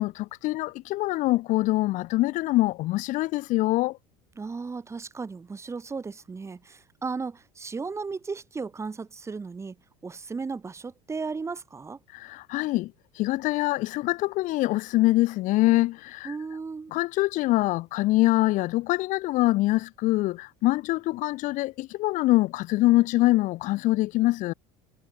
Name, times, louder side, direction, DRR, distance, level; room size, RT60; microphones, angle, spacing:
voice 1, 0.0-4.0 12.1-16.4 16.9-24.5, left 18 dB, 50° left, 0.5 m, -24 dB
voice 2, 4.4-9.8 10.0-12.0 16.2-16.9, right 4 dB, 15° right, 0.7 m, -35 dB
hypercardioid pair, 75°, 17 cm